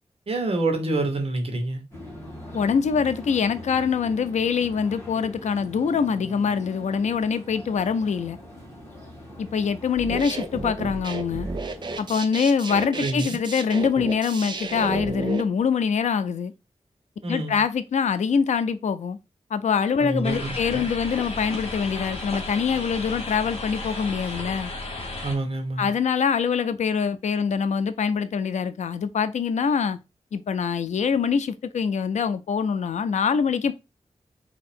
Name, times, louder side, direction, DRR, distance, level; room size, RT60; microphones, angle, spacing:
voice 1, 0.3-1.8 13.0-13.4 17.2-17.6 20.0-20.9 25.2-25.9, right 2 dB, 55° right, 1.2 m, -27 dB
sound 1, 1.9-12.2, left 1 dB, 20° left, 1.9 m, -42 dB
voice 2, 2.5-8.4 9.4-11.5 12.0-16.5 17.3-19.2 19.5-24.7 25.8-30.0 30.3-33.7, left 6 dB, 85° left, 0.4 m, -24 dB
sound 2, 9.9-15.4, right 3 dB, 40° right, 0.6 m, -32 dB
sound 3, 20.2-25.3, left 2 dB, 55° left, 1.4 m, -34 dB
4.1 x 2.8 x 4.3 m
wide cardioid pair, 135°, 12 cm